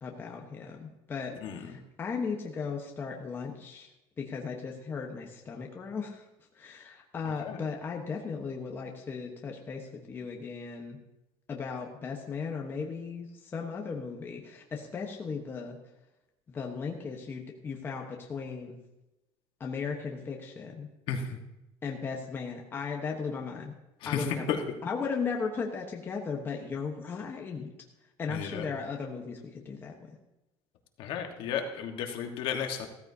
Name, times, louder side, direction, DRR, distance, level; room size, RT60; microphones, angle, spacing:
voice 1, 0.0-3.9 4.2-6.2 6.6-11.0 11.5-15.8 16.5-18.8 19.6-20.9 21.8-23.7 24.0-24.5 24.8-27.7 28.2-30.1, left 5 dB, 20° left, 1 dB, 1.1 m, -36 dB
voice 2, 21.1-21.4 24.0-24.6 28.3-28.6 31.0-32.9, left 7 dB, 55° left, 4 dB, 1.5 m, -33 dB
15.5 x 14.0 x 2.8 m, 0.97 s
cardioid pair, 165°, 11 cm